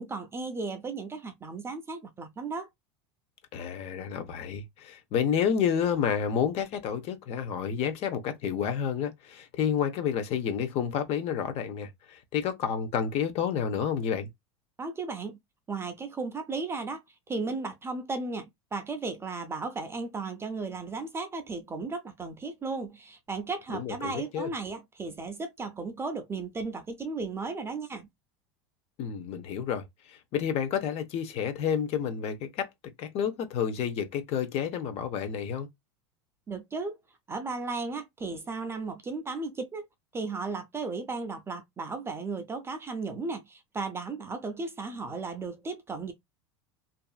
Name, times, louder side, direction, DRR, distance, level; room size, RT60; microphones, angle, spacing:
voice 1, 0.0-2.7 14.8-15.4 15.7-17.0 17.3-28.1 36.5-37.0 37.3-39.8 40.1-46.1, right 3 dB, 15° right, 0.5 m, -35 dB
voice 2, 3.5-14.3 23.7-24.5 29.0-32.7 33.0-35.7, left 8 dB, 45° left, 0.7 m, -30 dB
2.7 x 2.4 x 2.3 m
supercardioid pair, 125°, 15 cm